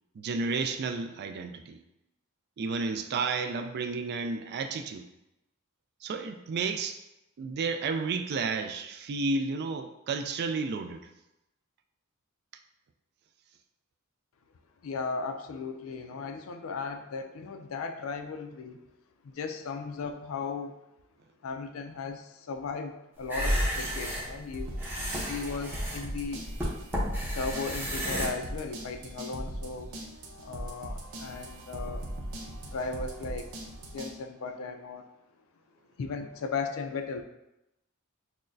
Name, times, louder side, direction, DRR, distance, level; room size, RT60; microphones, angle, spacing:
voice 1, 0.2-1.8 2.6-5.0 6.0-7.0 7.4-11.0, right 4 dB, 50° right, 6 dB, 0.3 m, -32 dB
voice 2, 14.8-18.8 19.2-20.8 21.4-24.8 25.3-26.5 27.3-29.9 30.4-32.1 32.6-33.5 33.9-35.1 36.0-37.2, left 4 dB, 70° left, 7 dB, 0.4 m, -36 dB
sound 1, 23.2-28.3, equal, 10° right, 0.7 m, -32 dB
sound 2, 24.5-34.1, right 1 dB, 90° right, 0.6 m, -40 dB
6.0 x 2.1 x 2.6 m, 0.90 s
head